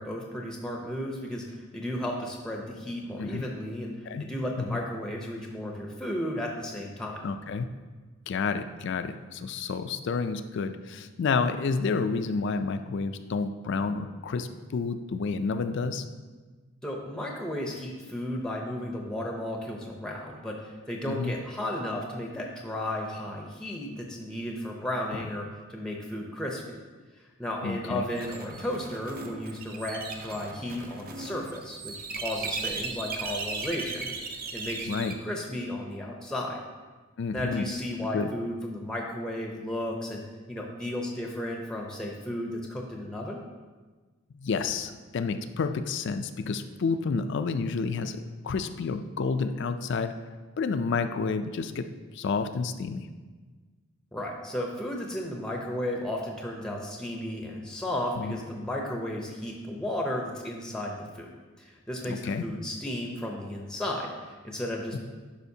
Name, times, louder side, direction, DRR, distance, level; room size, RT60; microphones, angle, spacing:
voice 1, 0.0-7.2 16.8-26.6 27.4-34.2 34.5-36.6 37.3-40.2 40.5-43.4 54.1-61.3 61.6-65.0, left 1 dB, 5° left, 0 dB, 0.6 m, -34 dB
voice 2, 7.2-7.6 8.3-16.1 21.1-21.3 27.6-28.0 34.9-35.1 37.2-37.7 38.1-38.3 44.3-50.1 50.6-51.9 52.1-53.1 58.2-58.4 62.1-62.4, left 4 dB, 50° left, 9 dB, 0.3 m, -30 dB
sound 1, 28.2-35.1, right 4 dB, 40° right, 0.6 m, -37 dB
11.0 x 5.0 x 2.7 m, 1.4 s
head